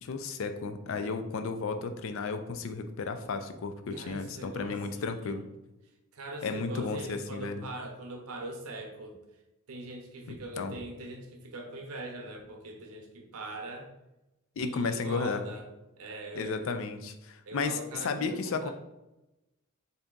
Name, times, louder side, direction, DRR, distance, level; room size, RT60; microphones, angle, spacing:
voice 1, 0.0-5.4 6.4-7.7 10.3-10.7 14.6-15.4 16.4-18.7, left 4 dB, 60° left, 8 dB, 0.4 m, -33 dB
voice 2, 3.9-5.5 6.1-9.2 9.7-13.9 14.6-15.7 16.0-16.8 17.5-18.7, right 2 dB, 80° right, 2 dB, 0.7 m, -42 dB
3.4 x 2.7 x 3.7 m, 0.96 s
head